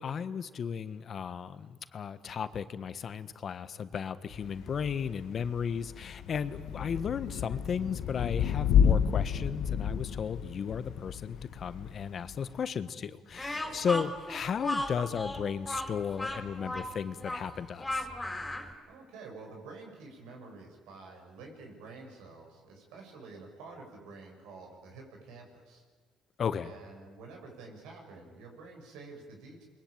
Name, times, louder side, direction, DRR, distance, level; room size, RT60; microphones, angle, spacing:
voice 1, 0.0-18.1 26.4-26.7, left 7 dB, 50° left, 13 dB, 1.4 m, -35 dB
Thunder / Rain, 4.3-12.6, left 8 dB, 70° left, 1.5 m, -31 dB
Speech, 13.3-18.7, left 1 dB, 15° left, 4.9 m, -35 dB
voice 2, 13.4-13.8 18.9-25.8 26.6-29.6, right 3 dB, 90° right, 1 dB, 7.7 m, -49 dB
29.0 x 22.0 x 9.0 m, 1.5 s
cardioid pair, 90°, 0 cm